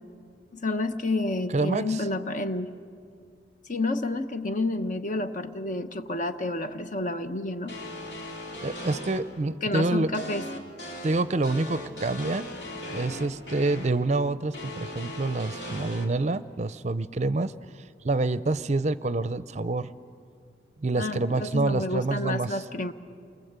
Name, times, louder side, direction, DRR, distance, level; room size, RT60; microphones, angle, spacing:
voice 1, 0.5-2.7 3.7-7.8 9.6-10.4 21.0-22.9, left 2 dB, 45° left, 9 dB, 1.1 m, -29 dB
voice 2, 1.5-2.0 8.6-10.1 11.0-12.5 12.9-17.5 18.0-19.9 20.8-22.6, right 2 dB, 40° right, 14 dB, 0.6 m, -27 dB
sound 1, 7.7-9.2 10.1-13.9 14.5-16.0, left 1 dB, 70° left, 3.1 m, -38 dB
29.0 x 22.5 x 8.1 m, 2.3 s
head